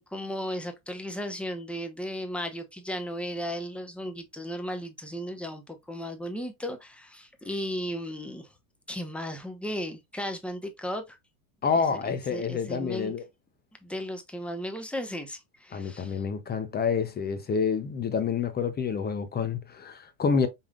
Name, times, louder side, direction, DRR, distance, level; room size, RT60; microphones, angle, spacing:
voice 1, 0.0-8.5 8.9-11.2 11.7-13.1 13.8-16.2, equal, ahead, 0.9 m, -35 dB
voice 2, 11.6-13.2 15.7-20.5, left 6 dB, 20° left, 0.6 m, -28 dB
5.4 x 3.6 x 2.4 m
supercardioid pair, 110°, 48 cm